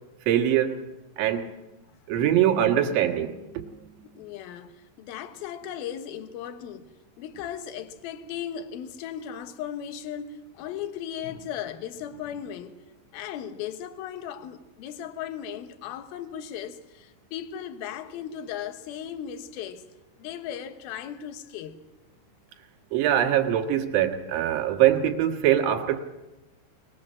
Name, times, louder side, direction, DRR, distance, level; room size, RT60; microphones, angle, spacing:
voice 1, 0.3-0.8 1.2-1.5 2.1-3.7 22.9-26.0, right 11 dB, 60° right, 2.6 m, -23 dB
voice 2, 4.0-6.9 7.2-12.8 13.1-19.8 20.2-21.8, left 9 dB, 70° left, 2.4 m, -37 dB
21.5 x 19.5 x 7.5 m
omnidirectional pair, 5.7 m